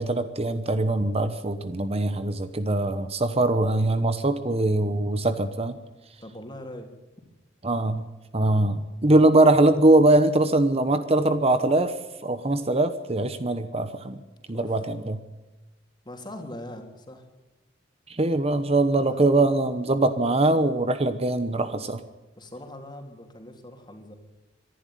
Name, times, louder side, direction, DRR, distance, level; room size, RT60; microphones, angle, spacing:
voice 1, 0.0-5.8 7.6-8.1 8.3-12.0 12.2-14.2 14.5-15.2 18.1-22.0, right 2 dB, 30° right, 11 dB, 1.0 m, -22 dB
voice 2, 6.2-6.9 14.5-14.8 16.0-17.2 19.0-19.7 22.4-24.1, left 1 dB, 25° left, 4 dB, 3.3 m, -41 dB
24.5 x 11.5 x 9.3 m, 1.1 s
head